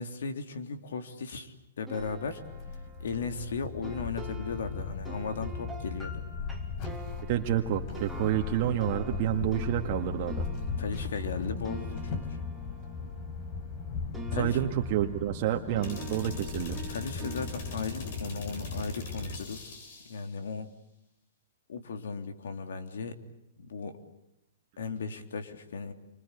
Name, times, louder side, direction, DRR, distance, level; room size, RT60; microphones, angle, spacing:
voice 1, 0.0-2.4 3.0-6.2 10.8-12.4 14.3-14.7 16.9-19.7 20.1-20.7 21.7-23.1 23.6-24.0 24.8-25.9, left 4 dB, 75° left, 8 dB, 3.4 m, -36 dB
sound 1, 1.9-13.8 14.1-19.4, right 3 dB, ahead, 3.3 m, -47 dB
sound 2, 2.0-19.2, left 5 dB, 35° left, 4.4 m, -38 dB
voice 2, 7.2-10.5 14.3-16.8, right 12 dB, 40° right, 3 dB, 1.9 m, -29 dB
sound 3, 15.8-20.3, left 3 dB, 50° left, 7.7 m, -39 dB
28.5 x 25.0 x 8.4 m, 0.82 s
hypercardioid pair, 145°, 0 cm